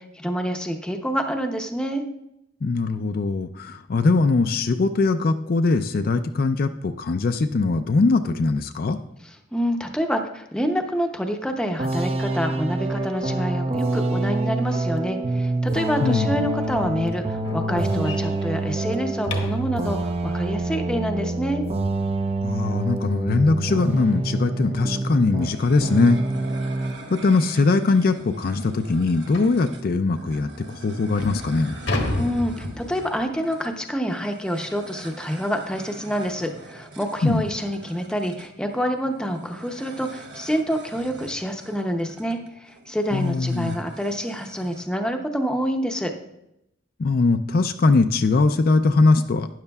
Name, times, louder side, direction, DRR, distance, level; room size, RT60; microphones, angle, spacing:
voice 1, 0.0-2.0 9.5-21.6 32.2-46.1, equal, 5° left, 4 dB, 0.7 m, -27 dB
voice 2, 2.6-9.0 16.0-16.5 22.4-26.2 27.1-31.8 37.2-37.4 43.1-43.8 47.0-49.5, left 3 dB, 50° left, 8 dB, 0.4 m, -21 dB
sound 1, 11.8-25.5 25.8-27.0, right 2 dB, 35° right, 0.5 m, -26 dB
sound 2, 16.6-19.7 22.5-22.6 23.1-23.3 23.7-23.8 24.3-24.4 25.4-25.6 26.0-26.1 26.8-26.9 27.2-27.3 27.8-27.9 29.3-29.6 30.4-30.5 31.0-33.2, left 2 dB, 85° left, 1.3 m, -32 dB
sound 3, 25.4-44.8, right 3 dB, 70° right, 1.1 m, -44 dB
12.0 x 9.7 x 2.3 m, 0.84 s
head